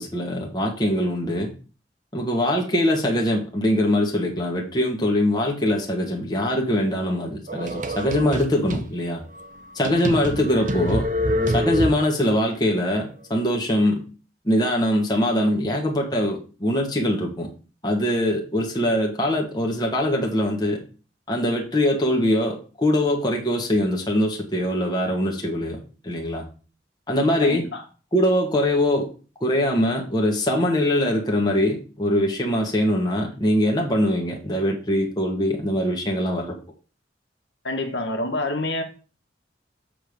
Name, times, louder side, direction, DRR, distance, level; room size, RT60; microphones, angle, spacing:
voice 1, 0.0-1.5 2.1-9.2 9.7-11.0 11.5-14.0 14.4-17.5 17.8-20.8 21.3-25.8 26.0-26.4 27.1-27.6 28.1-29.1 29.4-36.6, left 1 dB, 25° left, -1 dB, 1.6 m, -22 dB
sound 1, 7.5-8.9 9.4-9.5 9.8-12.3, equal, 45° right, 0.8 m, -26 dB
voice 2, 27.4-27.8 37.6-38.8, left 2 dB, 75° left, 4 dB, 1.7 m, -27 dB
7.8 x 3.6 x 6.6 m, 0.36 s
head